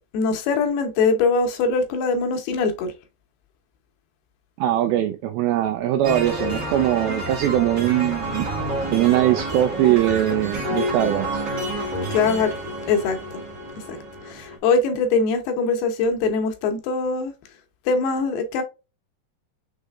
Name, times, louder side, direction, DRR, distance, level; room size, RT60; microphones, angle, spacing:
voice 1, 0.1-2.9 12.1-12.5 12.9-13.2 13.9-14.0 14.2-17.3 17.9-18.6, left 4 dB, 75° left, 2.6 m, -22 dB
voice 2, 4.6-8.5 8.9-11.4, right 13 dB, 85° right, 2.1 m, -21 dB
sound 1, 6.0-14.6, right 1 dB, 70° right, 1.0 m, -29 dB
6.5 x 3.5 x 2.3 m
omnidirectional pair, 4.9 m